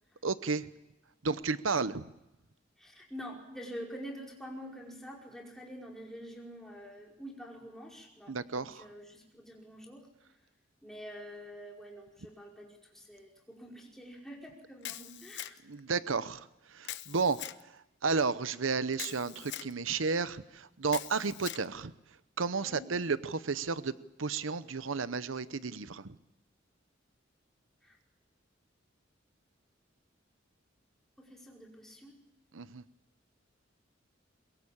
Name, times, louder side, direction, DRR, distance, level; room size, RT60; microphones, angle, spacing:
voice 1, 0.2-0.7 1.2-2.1 8.3-8.9 15.7-16.5 16.7-17.4 18.0-21.9 22.4-23.9 24.2-26.2 32.5-32.8, right 4 dB, 90° right, 14 dB, 0.9 m, -32 dB
voice 2, 2.8-10.1 10.8-15.6 22.6-22.9 27.8-28.0 31.2-32.2, equal, ahead, -1 dB, 5.1 m, -47 dB
Camera, 14.8-15.8 16.8-17.6 18.9-19.7 20.9-21.7, left 13 dB, 60° left, 0.9 m, -42 dB
23.0 x 22.0 x 8.7 m, 0.91 s
head